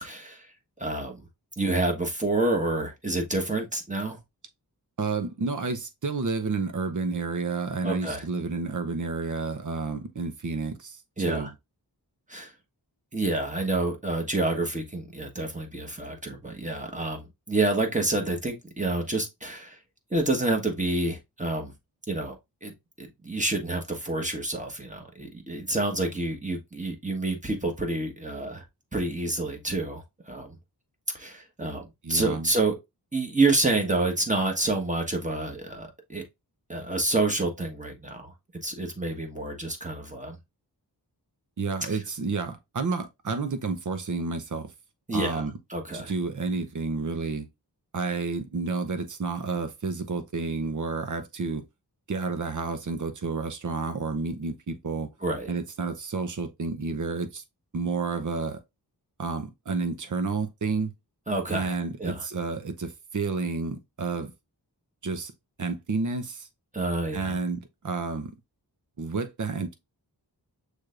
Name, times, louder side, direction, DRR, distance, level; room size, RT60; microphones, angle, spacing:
voice 1, 0.0-0.5 0.8-1.3 1.6-4.2 7.8-8.2 11.2-11.5 12.3-12.5 13.1-19.8 20.1-21.7 22.1-22.4 22.6-28.6 28.9-30.5 31.1-32.7 33.1-36.2 36.7-38.3 38.6-40.4 41.9-42.0 45.1-45.4 45.7-46.1 55.2-55.5 61.3-61.7 62.0-62.2 66.7-67.4, right 2 dB, 20° right, 1.4 m, -28 dB
voice 2, 5.0-11.0 11.3-11.5 32.0-32.5 41.6-44.7 45.1-45.6 45.9-47.5 47.9-51.6 52.1-55.1 55.5-57.4 57.7-58.6 59.2-60.9 61.5-64.3 65.0-65.3 65.6-66.5 67.1-68.3 69.0-69.7, right 4 dB, 45° right, 0.8 m, -30 dB
6.3 x 3.3 x 2.5 m
wide cardioid pair, 65°, 41 cm